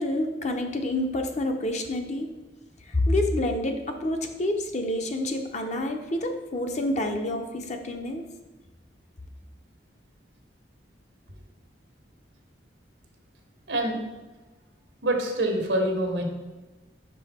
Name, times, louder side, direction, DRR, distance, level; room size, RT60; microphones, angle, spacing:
voice 1, 0.0-2.3 2.9-8.2, left 1 dB, 40° left, 4 dB, 0.7 m, -28 dB
voice 2, 15.0-16.2, right 1 dB, 90° right, 2 dB, 1.3 m, -25 dB
5.5 x 5.3 x 4.2 m, 1.2 s
head